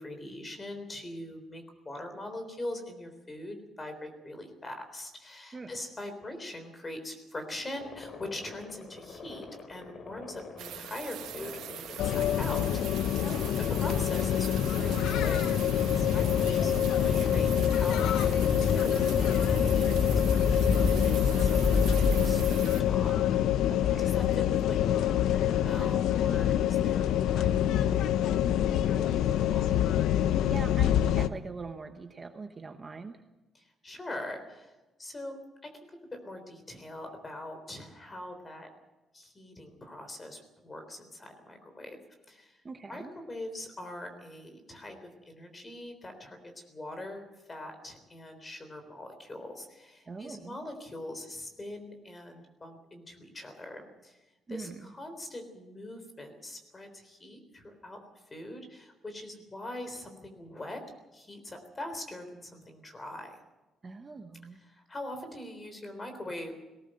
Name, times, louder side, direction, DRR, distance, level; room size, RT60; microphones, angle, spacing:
voice 1, 0.0-12.6 13.1-13.2 13.7-23.4 24.0-29.7 33.5-34.7 35.0-35.4 35.6-35.7 36.1-38.7 39.1-42.0 42.3-42.6 42.9-54.2 54.5-60.8 61.1-63.4 64.6-66.5, left 1 dB, 20° left, 6 dB, 3.7 m, -42 dB
sound 1, 7.8-22.9, left 3 dB, 40° left, 2.6 m, -33 dB
sound 2, 10.6-22.8, right 11 dB, 90° right, 1.1 m, -43 dB
sound 3, 12.0-31.3, left 10 dB, 85° left, 0.7 m, -26 dB
voice 2, 13.2-13.6 23.7-24.2 30.2-33.2 42.6-43.1 50.1-50.6 54.5-54.9 63.8-64.6, right 4 dB, 20° right, 6 dB, 1.0 m, -42 dB
19.0 x 18.0 x 7.7 m, 1.1 s
cardioid pair, 165°, 0 cm